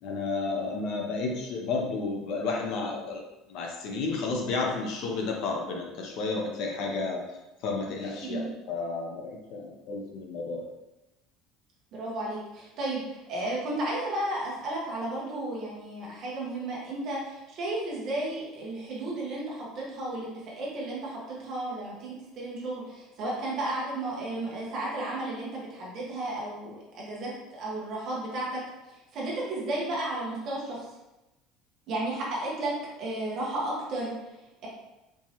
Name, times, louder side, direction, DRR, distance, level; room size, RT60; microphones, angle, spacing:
voice 1, 0.0-3.2 3.5-7.4 7.6-10.7, left 3 dB, 50° left, 1 dB, 0.6 m, -32 dB
voice 2, 8.2-8.5 11.9-28.6 29.1-30.8 31.9-32.7 33.0-34.1, right 2 dB, 35° right, -4 dB, 1.1 m, -33 dB
4.5 x 2.9 x 2.9 m, 0.98 s
cardioid pair, 180°, 0 cm